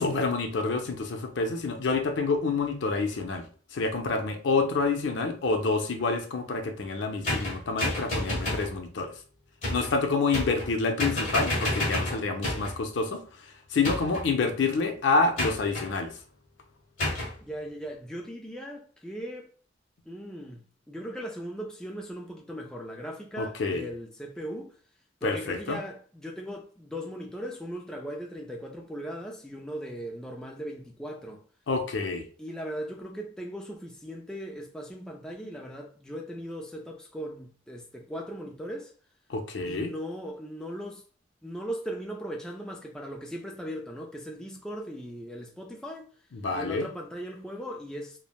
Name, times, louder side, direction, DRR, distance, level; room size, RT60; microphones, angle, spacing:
voice 1, 0.0-3.5 3.7-9.1 9.7-16.2 23.4-23.9 25.2-25.8 31.7-32.3 39.3-39.9 46.3-46.9, left 4 dB, 70° left, 0.5 m, -28 dB
sound 1, 7.2-8.7 9.6-9.9 10.3-10.7 11.0-12.8 13.8-14.3 15.4-15.9 17.0-17.3, left 1 dB, 45° left, 1.2 m, -30 dB
voice 2, 17.4-19.5 20.1-24.7 25.2-31.4 32.4-38.9 39.7-41.0 41.4-46.1 46.5-48.2, equal, 5° left, 0.3 m, -38 dB
3.1 x 2.0 x 2.3 m
head